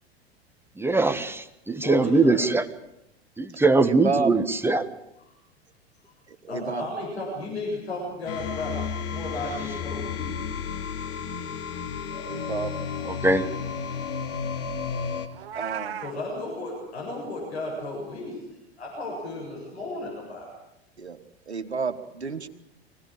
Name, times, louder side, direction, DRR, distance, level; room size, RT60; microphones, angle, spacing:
voice 1, 0.8-2.7 3.4-4.9 13.0-13.5, right 3 dB, 5° right, 11 dB, 1.3 m, -22 dB
voice 2, 1.8-2.4 6.5-8.8 9.1-10.3 16.0-20.5, left 2 dB, 80° left, -2 dB, 7.9 m, -34 dB
voice 3, 3.8-4.3 6.3-6.9 12.3-12.7 15.5-16.0 21.0-21.2 21.5-22.5, right 4 dB, 85° right, 9 dB, 1.5 m, -30 dB
sound 1, 8.3-15.3, left 6 dB, 50° left, 2.8 m, -32 dB
Meow, 15.3-16.1, right 9 dB, 60° right, 1.3 m, -35 dB
24.5 x 17.5 x 9.0 m, 0.85 s
figure-of-eight pair, 90°, 32 cm